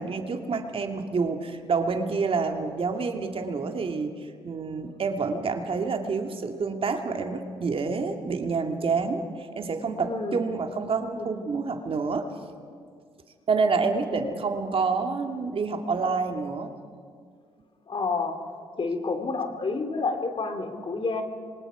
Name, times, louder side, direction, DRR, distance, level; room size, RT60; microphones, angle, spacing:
voice 1, 0.0-12.3 13.5-16.7, right 4 dB, 50° right, 5 dB, 2.2 m, -28 dB
voice 2, 10.0-10.5 11.2-11.5 17.9-18.4 18.8-21.2, left 4 dB, 50° left, 6 dB, 2.8 m, -29 dB
26.5 x 23.5 x 5.0 m, 2.1 s
supercardioid pair, 55°, 12 cm